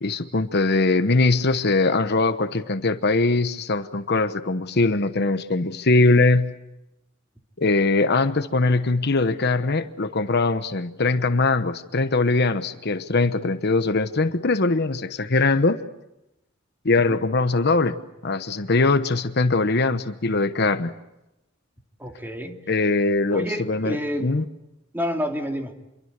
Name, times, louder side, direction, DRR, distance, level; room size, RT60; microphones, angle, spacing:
voice 1, 0.0-6.5 7.6-15.8 16.8-20.9 22.7-24.5, left 3 dB, 55° left, 10 dB, 1.1 m, -21 dB
voice 2, 22.0-22.6 23.3-24.3 24.9-25.7, equal, 10° right, 3 dB, 2.9 m, -29 dB
27.5 x 23.5 x 8.2 m, 0.91 s
head